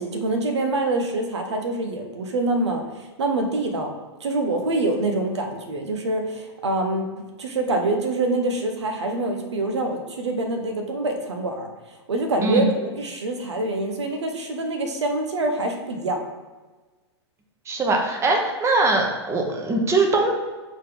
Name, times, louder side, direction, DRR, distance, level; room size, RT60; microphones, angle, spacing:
voice 1, 0.0-3.9 4.2-7.1 7.4-11.7 12.1-16.2, right 2 dB, 75° right, 4 dB, 1.0 m, -25 dB
voice 2, 17.7-20.3, right 2 dB, 20° right, 2 dB, 1.1 m, -21 dB
6.4 x 4.1 x 3.8 m, 1.3 s
hypercardioid pair, 110°, 14 cm